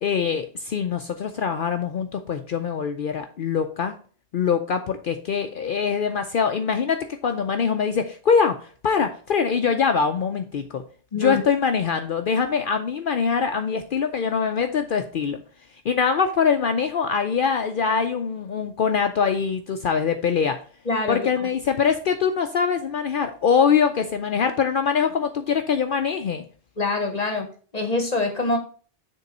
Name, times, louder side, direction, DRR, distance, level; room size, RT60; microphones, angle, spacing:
voice 1, 0.0-3.9 4.3-10.8 11.1-15.4 15.8-20.6 21.1-26.4, left 6 dB, 60° left, 0.7 m, -23 dB
voice 2, 11.1-11.4 20.8-21.5 26.8-28.6, left 3 dB, 40° left, 1.0 m, -25 dB
6.8 x 3.7 x 5.2 m
omnidirectional pair, 1.1 m